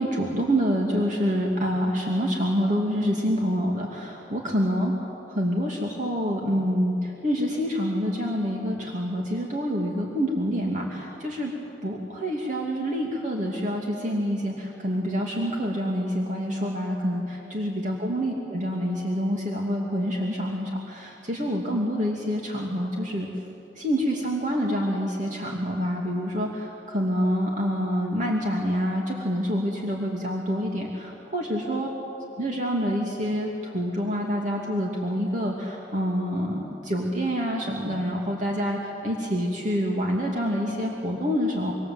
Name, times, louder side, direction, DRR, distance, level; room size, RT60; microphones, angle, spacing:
voice 1, 0.0-4.9 5.3-11.5 11.8-23.3 23.8-31.9 32.4-41.7, equal, 45° right, -1 dB, 2.6 m, -27 dB
26.5 x 25.0 x 7.9 m, 3.0 s
head